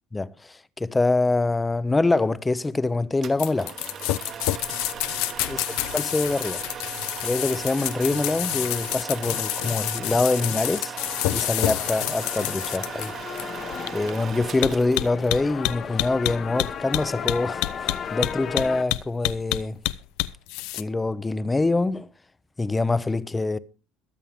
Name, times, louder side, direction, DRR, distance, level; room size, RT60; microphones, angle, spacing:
voice 1, 0.1-3.7 5.5-5.6 5.9-6.6 7.2-11.0 11.3-13.1 13.9-19.8 20.7-22.1 22.6-23.6, left 3 dB, 10° left, 0.5 m, -25 dB
sound 1, 3.2-15.5, right 8 dB, 40° right, 1.0 m, -38 dB
sound 2, 3.4-20.8, left 17 dB, 75° left, 0.5 m, -28 dB
sound 3, 11.0-18.8, left 7 dB, 35° left, 0.8 m, -36 dB
21.5 x 7.2 x 3.5 m
cardioid pair, 150°, 0 cm